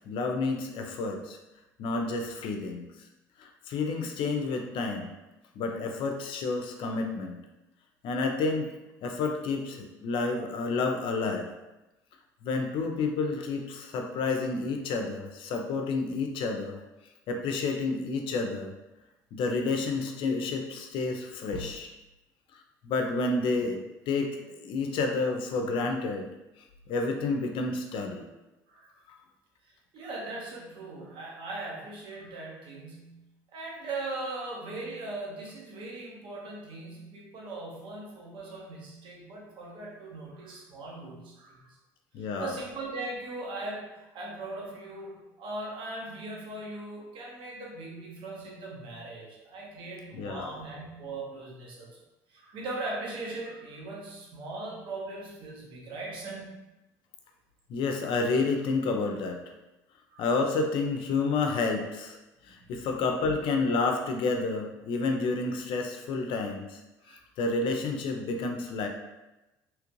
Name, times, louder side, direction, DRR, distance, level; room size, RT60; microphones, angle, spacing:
voice 1, 0.1-1.4 1.8-2.8 3.4-5.1 5.6-7.4 8.0-8.7 9.0-11.5 12.4-16.8 17.3-18.7 19.3-21.9 22.8-23.8 24.1-26.3 26.9-28.2 42.1-42.5 50.1-50.5 57.7-59.4 60.2-62.2 62.4-66.8 67.1-68.9, left 3 dB, 65° left, 4 dB, 0.5 m, -30 dB
voice 2, 29.6-33.2 33.5-41.8 42.2-52.0 52.3-56.6 60.1-60.2 62.5-63.1 67.0-67.2, right 2 dB, 60° right, -3 dB, 0.9 m, -39 dB
3.0 x 2.4 x 3.1 m, 1.0 s
supercardioid pair, 80°, 9 cm